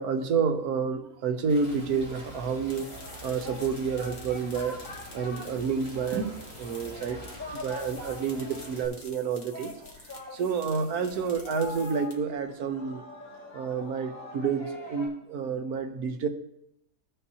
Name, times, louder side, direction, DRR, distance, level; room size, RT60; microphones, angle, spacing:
voice 1, 0.0-2.9 3.2-4.8 5.1-7.2 7.5-9.7 10.3-13.0 13.5-16.3, right 5 dB, 70° right, 7 dB, 1.3 m, -29 dB
Rain, 1.5-8.9, right 1 dB, 15° right, 1.9 m, -46 dB
Singing, 2.0-15.1, left 2 dB, 10° left, 3.3 m, -44 dB
sound 1, 2.4-12.4, left 3 dB, 40° left, 1.4 m, -50 dB
15.0 x 5.4 x 2.8 m, 0.76 s
omnidirectional pair, 1.8 m